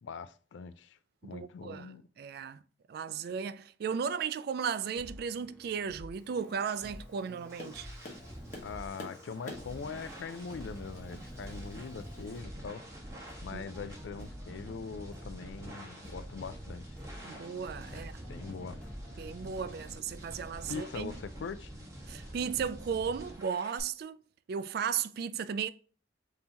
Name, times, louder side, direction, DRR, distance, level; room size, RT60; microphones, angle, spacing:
voice 1, 0.0-2.1 8.4-12.8 13.4-17.0 17.9-18.8 20.7-21.9, left 5 dB, 80° left, 0.4 m, -42 dB
voice 2, 1.2-2.6 2.9-7.9 13.5-13.6 17.2-18.2 18.4-18.5 19.2-21.1 22.1-24.2 24.5-25.7, right 7 dB, 60° right, 0.3 m, -35 dB
sound 1, 5.0-20.4, equal, 5° left, 0.7 m, -51 dB
Tap, 6.1-12.4, left 1 dB, 45° left, 1.1 m, -51 dB
sound 2, 7.0-23.8, right 1 dB, 15° right, 1.2 m, -47 dB
5.4 x 2.8 x 2.8 m
head